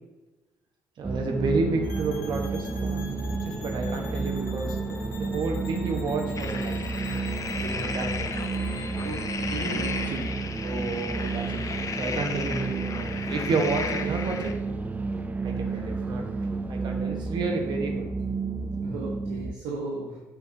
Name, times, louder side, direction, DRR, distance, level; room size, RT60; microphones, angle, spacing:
sound 1, 1.0-19.5, right 4 dB, 15° right, 0.4 m, -31 dB
voice 1, 1.0-6.8 7.5-8.3 10.1-10.2 10.6-14.5 15.4-16.2 16.7-18.1, right 3 dB, 55° right, 2 dB, 1.2 m, -31 dB
sound 2, 1.8-10.1, left 3 dB, 85° left, 0.8 m, -42 dB
sound 3, 6.4-14.5, left 5 dB, 40° left, 0.8 m, -35 dB
voice 2, 9.5-10.0 16.0-16.1 18.8-20.2, right 3 dB, 75° right, -1 dB, 1.0 m, -35 dB
6.0 x 5.6 x 2.8 m, 1.1 s
hypercardioid pair, 50°, 9 cm